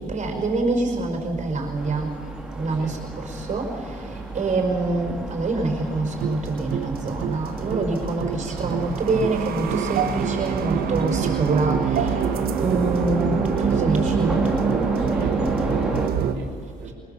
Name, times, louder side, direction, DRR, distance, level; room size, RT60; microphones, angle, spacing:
voice 1, 0.1-2.1 2.5-14.4, right 3 dB, 45° right, 3 dB, 5.3 m, -26 dB
sound 1, 1.8-16.1, right 1 dB, 5° right, 3.0 m, -32 dB
voice 2, 2.7-3.0 12.0-12.3 15.0-16.9, right 5 dB, 80° right, -3 dB, 4.1 m, -41 dB
sound 2, 6.1-16.3, right 8 dB, 65° right, 1.4 m, -26 dB
23.5 x 20.5 x 7.1 m, 2.3 s
cardioid pair, 110°, 17 cm